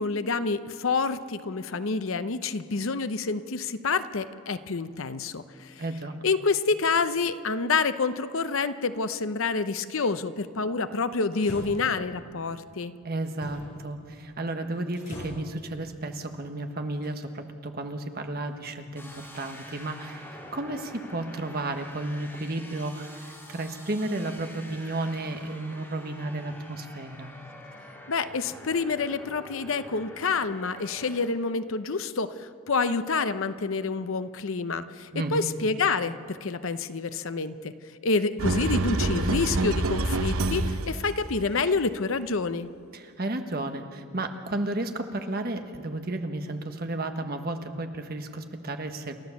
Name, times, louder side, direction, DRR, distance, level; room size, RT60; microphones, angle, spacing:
voice 1, 0.0-5.8 6.2-12.9 28.1-37.7 38.0-42.7, left 4 dB, 65° left, 12 dB, 0.7 m, -28 dB
voice 2, 5.8-6.1 13.0-19.1 19.3-27.3 35.1-35.5 42.9-49.1, right 2 dB, 45° right, 6 dB, 1.3 m, -33 dB
sound 1, 8.3-8.4 11.3-12.2 13.4-13.8 14.1-14.4 14.7-15.5 16.9-17.4 18.4-18.5, equal, 40° left, 5.7 m, -42 dB
sound 2, 19.0-31.3, left 1 dB, 10° left, 2.7 m, -46 dB
sound 3, 38.4-41.1, right 2 dB, 70° right, 0.9 m, -26 dB
29.0 x 12.5 x 7.1 m, 2.3 s
head